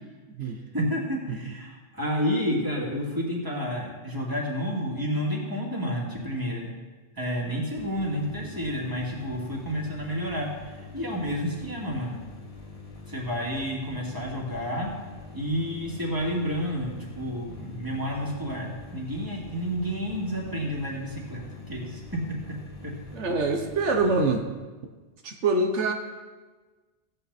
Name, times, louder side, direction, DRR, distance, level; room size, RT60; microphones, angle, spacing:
voice 1, 0.7-6.7 7.2-10.5 10.8-12.2 13.1-14.9 15.3-22.2 22.5-22.6 22.8-22.9, equal, 20° right, -3 dB, 2.6 m, -30 dB
sound 1, 7.8-24.3, left 3 dB, 30° left, 1.4 m, -44 dB
voice 2, 23.1-24.5 25.2-25.9, right 3 dB, 80° right, 4 dB, 1.3 m, -24 dB
16.0 x 8.8 x 4.2 m, 1.3 s
omnidirectional pair, 1.2 m